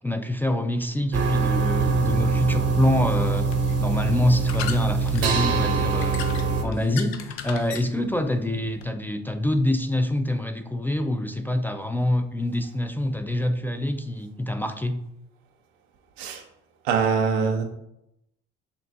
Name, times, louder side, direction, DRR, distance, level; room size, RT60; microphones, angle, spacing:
voice 1, 0.0-3.5 3.8-6.2 6.6-15.0, left 1 dB, 5° left, 6 dB, 0.3 m, -26 dB
sound 1, 1.1-6.6, right 4 dB, 50° right, 0.8 m, -23 dB
sound 2, 1.9-8.9, left 8 dB, 90° left, 0.5 m, -39 dB
voice 2, 16.8-17.6, right 5 dB, 90° right, 3 dB, 0.6 m, -23 dB
6.6 x 2.5 x 2.4 m, 0.80 s
hypercardioid pair, 65°, 31 cm